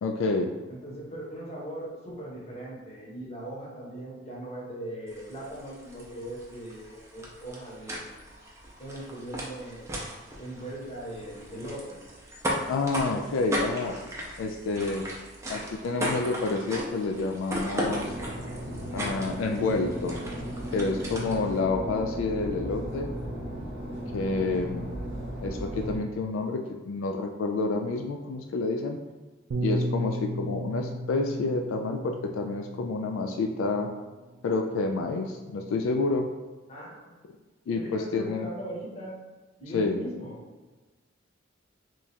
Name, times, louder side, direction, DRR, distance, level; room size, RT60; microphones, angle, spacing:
voice 1, 0.0-0.5 12.7-14.0 14.4-15.0 15.5-18.1 18.9-20.2 20.7-23.1 24.1-24.9 25.4-29.0 29.6-33.9 34.4-36.3 37.7-38.5 39.7-40.0, left 3 dB, 85° left, 4 dB, 0.3 m, -29 dB
voice 2, 0.7-8.2 8.8-9.9 10.4-12.0 36.7-37.1 37.7-39.2 39.6-40.4, right 1 dB, 35° left, -5 dB, 1.0 m, -39 dB
sound 1, 5.1-21.6, equal, 15° right, 0.5 m, -37 dB
sound 2, 17.8-26.0, equal, 60° right, 0.8 m, -36 dB
Bass guitar, 29.5-34.0 34.8-35.8, equal, 90° right, 0.4 m, -35 dB
3.1 x 2.4 x 4.1 m, 1.3 s
head